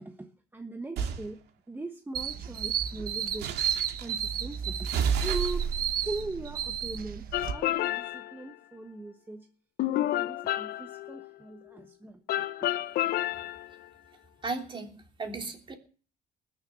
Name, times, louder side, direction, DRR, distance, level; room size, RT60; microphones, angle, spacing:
voice 1, 0.0-3.6 4.0-4.9 5.2-5.8 6.0-9.5 9.9-12.7, right 2 dB, 10° right, 1.2 m, -40 dB
sound 1, 1.0-1.2 3.4-4.1 4.8-7.5, right 7 dB, 80° right, 2.0 m, -32 dB
sound 2, 2.1-7.5, right 9 dB, 60° right, 1.2 m, -33 dB
sound 3, 7.3-8.4 9.8-11.3 12.3-13.7, left 14 dB, 65° left, 0.7 m, -30 dB
voice 2, 14.4-15.7, right 3 dB, 30° right, 3.1 m, -36 dB
20.0 x 7.0 x 7.1 m
cardioid pair, 110°, 17 cm